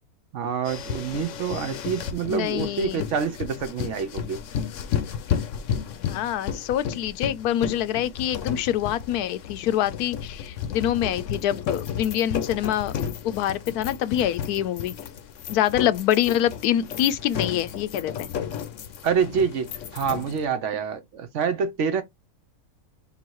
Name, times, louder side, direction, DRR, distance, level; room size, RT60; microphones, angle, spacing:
voice 1, 0.3-4.4 19.0-22.0, right 6 dB, 60° right, 0.9 m, -27 dB
sound 1, 0.6-20.5, left 8 dB, 65° left, 0.9 m, -33 dB
voice 2, 2.3-3.0 5.9-12.9 13.2-15.0 15.5-18.3, left 11 dB, 85° left, 1.1 m, -25 dB
3.8 x 2.6 x 4.6 m
omnidirectional pair, 1.6 m